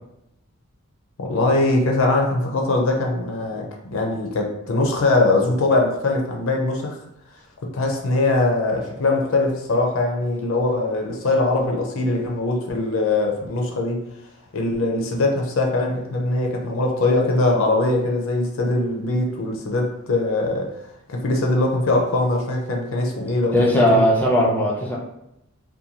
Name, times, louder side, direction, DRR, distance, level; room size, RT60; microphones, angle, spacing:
voice 1, 1.2-3.7 3.9-7.0 7.7-14.0 14.5-20.8 21.1-23.6 23.9-24.0, left 2 dB, 60° left, 0.5 m, -21 dB
voice 2, 23.5-25.0, equal, 10° left, 0.4 m, -18 dB
2.6 x 2.2 x 2.8 m
head